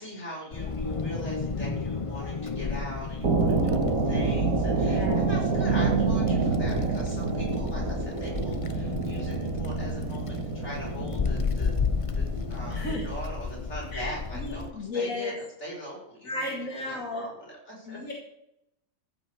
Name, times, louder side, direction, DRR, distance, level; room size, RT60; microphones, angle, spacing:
voice 1, 0.0-11.7 12.1-15.3 15.6-18.0, equal, 55° left, -3 dB, 5.9 m, -41 dB
Wind, 0.5-14.7, left 5 dB, 35° left, 0.5 m, -33 dB
sound 1, 3.2-13.1, right 4 dB, 80° right, 2.2 m, -27 dB
voice 2, 4.9-5.3 12.7-13.0 13.9-14.1 14.4-15.3 16.2-17.3 17.9-18.1, left 2 dB, 80° left, -2 dB, 2.5 m, -34 dB
14.5 x 6.0 x 8.4 m, 0.80 s
omnidirectional pair, 1.4 m